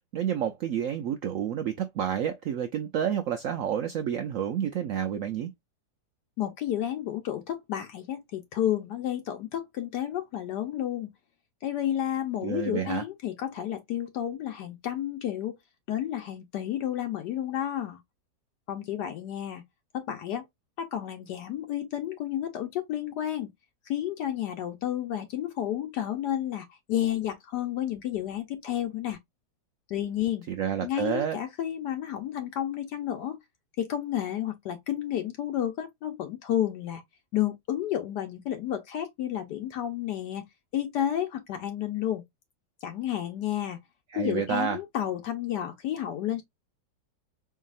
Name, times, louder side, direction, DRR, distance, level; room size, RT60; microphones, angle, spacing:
voice 1, 0.1-5.5 12.4-13.0 30.5-31.4 44.1-44.8, right 9 dB, 85° right, 0.7 m, -29 dB
voice 2, 6.4-11.1 11.6-15.6 15.9-18.0 18.7-19.6 19.9-20.5 20.8-23.5 23.9-29.2 29.9-30.4 30.8-33.4 33.8-37.0 37.3-40.4 40.7-42.2 42.8-43.8 44.2-46.4, left 11 dB, 70° left, 1.2 m, -31 dB
4.6 x 2.8 x 2.3 m
omnidirectional pair, 1.9 m